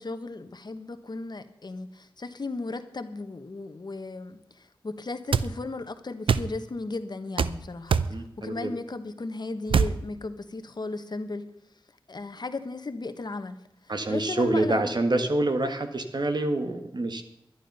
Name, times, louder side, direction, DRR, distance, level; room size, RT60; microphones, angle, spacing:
voice 1, 0.0-11.5 12.1-13.6 14.1-14.9, left 3 dB, 55° left, 9 dB, 1.2 m, -36 dB
sound 1, 5.3-5.5 6.3-6.5 7.4-7.6 7.9-8.1 9.7-10.0, right 6 dB, 90° right, 0.5 m, -22 dB
voice 2, 8.1-8.7 13.9-17.2, right 2 dB, 55° right, 7 dB, 1.6 m, -26 dB
11.5 x 11.5 x 5.5 m, 0.83 s
cardioid pair, 45°, 9 cm